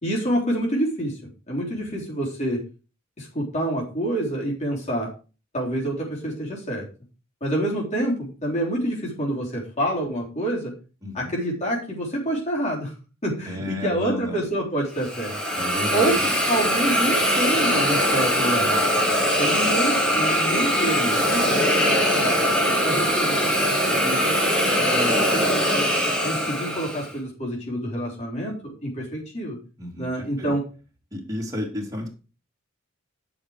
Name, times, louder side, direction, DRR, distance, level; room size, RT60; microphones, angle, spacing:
voice 1, 0.0-2.6 3.2-5.1 5.5-6.9 7.4-10.7 11.1-12.9 13.2-15.3 15.9-19.0 19.4-22.4 22.8-24.4 24.8-25.9 26.2-29.6 30.0-30.6, right 1 dB, 35° left, -3 dB, 3.7 m, -27 dB
voice 2, 11.0-11.3 13.5-14.4 15.6-16.3 29.8-30.5 31.1-32.1, left 1 dB, 15° right, -2 dB, 3.0 m, -32 dB
Hiss, 15.0-27.1, equal, 5° left, 2.3 m, -22 dB
10.5 x 6.2 x 4.8 m, 0.33 s
head